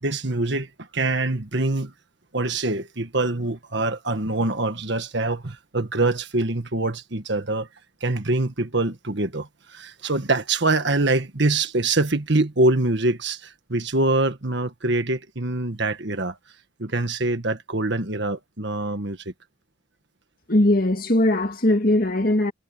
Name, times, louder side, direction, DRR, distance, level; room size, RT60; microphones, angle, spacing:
voice 1, 0.0-1.9 2.3-7.7 8.0-16.4 16.8-19.3, right 2 dB, 55° right, 1.7 m, -24 dB
voice 2, 20.5-22.5, left 1 dB, 45° left, 2.1 m, -20 dB
head